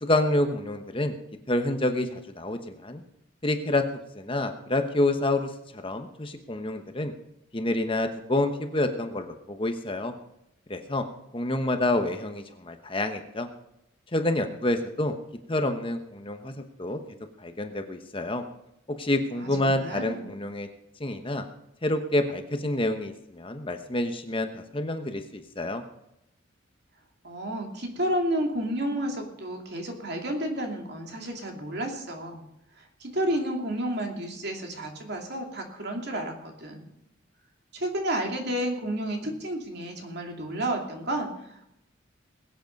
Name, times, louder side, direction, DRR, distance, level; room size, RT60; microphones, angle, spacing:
voice 1, 0.0-1.1 1.5-3.0 3.4-3.8 4.1-7.1 7.5-10.1 10.7-11.0 11.3-13.5 14.1-15.1 15.5-16.5 16.8-17.0 17.4-18.4 18.9-20.7 21.0-21.4 21.8-25.8, left 1 dB, 25° left, 7 dB, 1.0 m, -28 dB
voice 2, 19.3-20.3 27.2-32.4 32.8-36.9 37.7-41.7, right 1 dB, 55° right, 2 dB, 2.7 m, -31 dB
21.5 x 8.2 x 5.3 m, 0.82 s
head